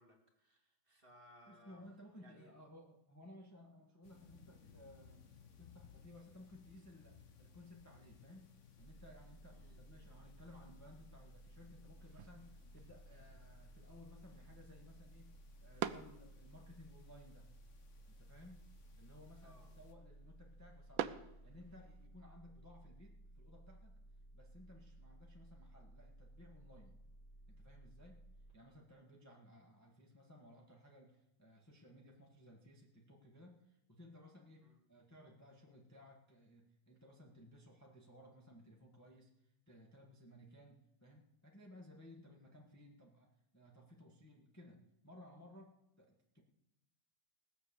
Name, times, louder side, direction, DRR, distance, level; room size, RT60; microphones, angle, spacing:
voice 1, 0.0-1.9 2.2-2.5 9.5-9.8 19.4-19.7 34.6-34.8, equal, 30° right, 1 dB, 2.6 m, -64 dB
voice 2, 1.5-5.2 5.6-8.5 8.8-17.5 18.1-18.7 19.0-24.0 24.3-27.0 27.5-28.2 28.5-46.4, left 1 dB, 10° left, 0 dB, 1.5 m, -59 dB
sound 1, 4.0-19.9, left 6 dB, 45° left, 1.3 m, -64 dB
sound 2, 8.8-28.5, right 1 dB, 75° left, 4.0 m, -58 dB
sound 3, 12.0-22.1, right 11 dB, 80° right, 1.4 m, -49 dB
19.0 x 7.2 x 7.0 m, 0.83 s
omnidirectional pair, 2.1 m